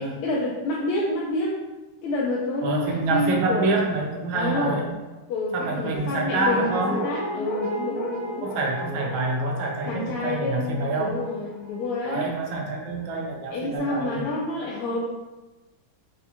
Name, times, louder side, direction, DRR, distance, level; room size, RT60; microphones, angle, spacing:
voice 1, 0.0-1.5 2.0-3.7 4.3-4.8 5.3-8.5 9.9-12.3 13.5-15.0, left 2 dB, 90° left, -4 dB, 1.5 m, -28 dB
voice 2, 2.6-4.9 5.5-7.0 8.4-11.2 12.0-14.2, right 3 dB, 75° right, 1 dB, 1.3 m, -27 dB
Guitar, 5.9-13.0 13.3-13.4, equal, 70° left, 1.8 m, -35 dB
4.8 x 2.2 x 2.7 m, 1.1 s
omnidirectional pair, 2.4 m